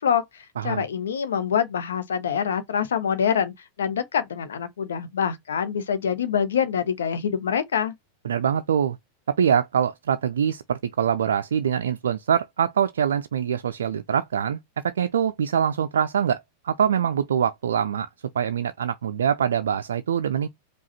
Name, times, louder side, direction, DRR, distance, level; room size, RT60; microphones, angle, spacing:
voice 1, 0.0-7.9, left 7 dB, 65° left, 0.8 m, -25 dB
voice 2, 0.6-0.9 8.2-9.0 9.3-14.6 14.8-16.4 16.6-18.1 18.3-20.5, right 8 dB, 65° right, 0.3 m, -24 dB
4.8 x 2.4 x 4.1 m
figure-of-eight pair, 90°, 0 cm